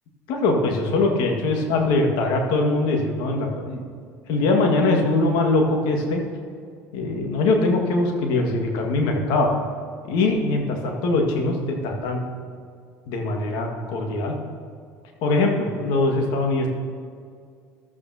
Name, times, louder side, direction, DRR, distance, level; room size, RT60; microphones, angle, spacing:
voice 1, 0.3-3.8 4.3-6.2 6.9-9.5 10.1-12.2 13.1-14.4 15.2-16.7, left 2 dB, 65° left, 2 dB, 1.8 m, -22 dB
14.0 x 12.0 x 2.9 m, 2.2 s
hypercardioid pair, 70°, 8 cm